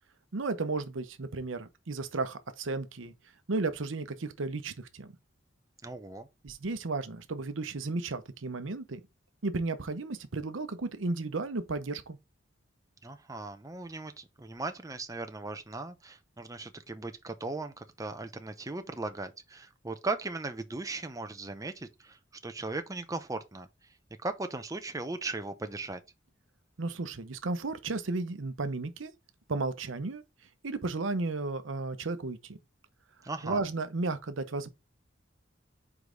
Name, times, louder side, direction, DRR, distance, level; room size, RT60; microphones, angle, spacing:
voice 1, 0.3-3.1 3.5-5.1 6.4-9.0 9.4-12.2 26.8-29.1 29.5-30.2 30.6-32.6 33.4-34.7, right 3 dB, 85° right, 0.8 m, -34 dB
voice 2, 5.8-6.3 13.0-23.7 24.2-26.0 33.2-33.6, right 3 dB, 20° right, 0.7 m, -38 dB
5.1 x 4.8 x 3.9 m
head